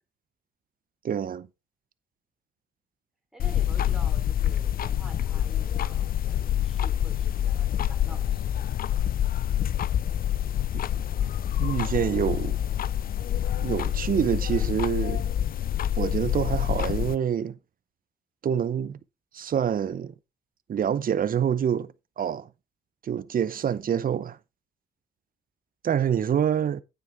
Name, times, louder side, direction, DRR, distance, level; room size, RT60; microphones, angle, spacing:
voice 1, 1.0-1.5 11.6-12.6 13.6-15.3 16.0-17.5 18.4-19.0 19.3-20.1 20.7-21.9 22.2-22.5 23.0-24.4 25.8-26.8, right 8 dB, 45° right, 0.7 m, -26 dB
voice 2, 3.3-8.5, right 1 dB, ahead, 3.6 m, -48 dB
sound 1, 3.4-17.2, left 11 dB, 50° left, 0.5 m, -27 dB
9.4 x 8.0 x 3.5 m
cardioid pair, 90°, 20 cm